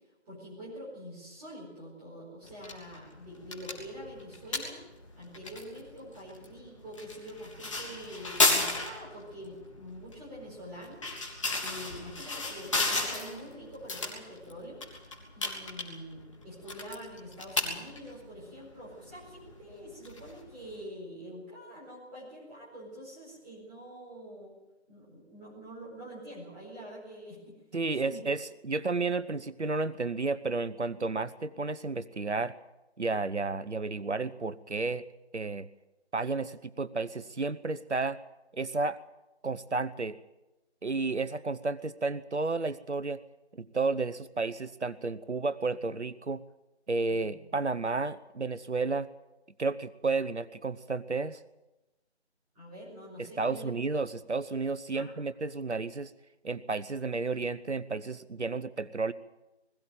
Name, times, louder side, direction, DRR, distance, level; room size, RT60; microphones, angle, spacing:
voice 1, 0.3-4.8 5.1-11.1 11.6-14.8 15.3-24.5 24.9-27.6 27.9-28.2 52.5-53.7 54.9-55.1, equal, 5° right, -8 dB, 4.6 m, -45 dB
sound 1, 2.4-20.8, left 2 dB, 30° left, 3.4 m, -35 dB
voice 2, 27.7-32.5 33.0-35.0 35.3-35.7 36.1-38.2 38.5-39.0 39.4-40.2 40.8-43.2 43.6-46.4 46.9-49.1 49.6-51.4 53.2-56.1 56.4-59.1, right 3 dB, 80° right, 16 dB, 0.9 m, -32 dB
21.0 x 16.0 x 9.0 m, 1.0 s
figure-of-eight pair, 165°, 34 cm